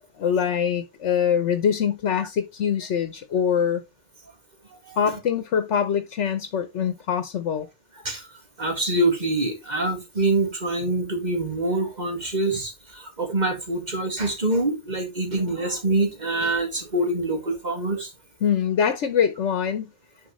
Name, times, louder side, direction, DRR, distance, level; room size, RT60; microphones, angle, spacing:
voice 1, 0.2-3.8 5.0-7.7 18.4-19.9, left 8 dB, 80° left, 1.2 m, -24 dB
voice 2, 8.6-18.1, right 2 dB, 40° right, 2.1 m, -25 dB
10.5 x 4.6 x 3.1 m
omnidirectional pair, 1.2 m